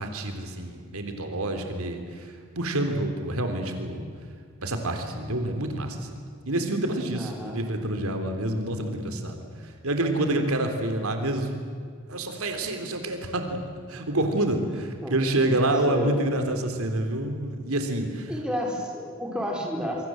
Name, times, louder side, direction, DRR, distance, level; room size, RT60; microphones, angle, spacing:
voice 1, 0.0-4.0 4.6-11.5 12.1-13.6 13.9-18.3, right 1 dB, 90° right, 5 dB, 3.5 m, -28 dB
voice 2, 7.1-7.6 15.0-15.2 15.9-16.2 18.3-20.1, equal, 5° right, -1 dB, 4.8 m, -31 dB
27.0 x 24.5 x 7.8 m, 2.1 s
head